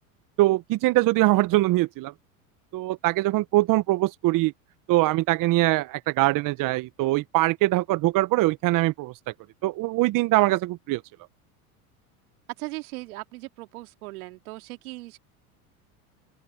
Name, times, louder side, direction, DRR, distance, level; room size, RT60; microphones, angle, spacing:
voice 1, 0.4-2.1 2.7-4.5 4.9-9.1 9.6-11.0, right 18 dB, 45° right, 0.9 m, -22 dB
voice 2, 12.6-15.2, right 22 dB, 75° right, 2.5 m, -38 dB
open air
hypercardioid pair, 90°, 44 cm